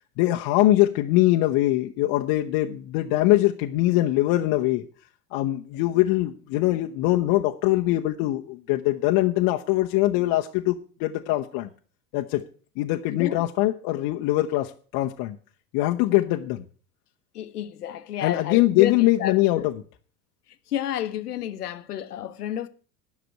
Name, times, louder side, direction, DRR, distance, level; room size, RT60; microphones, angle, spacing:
voice 1, 0.2-4.8 5.3-11.7 12.1-12.4 12.8-15.4 15.7-16.6 18.2-19.7, left 16 dB, 45° left, 0.9 m, -22 dB
voice 2, 13.1-13.4 17.3-18.9 19.2-19.7 20.7-22.7, left 11 dB, 80° left, 1.0 m, -31 dB
10.5 x 6.0 x 7.5 m
hypercardioid pair, 85°, 46 cm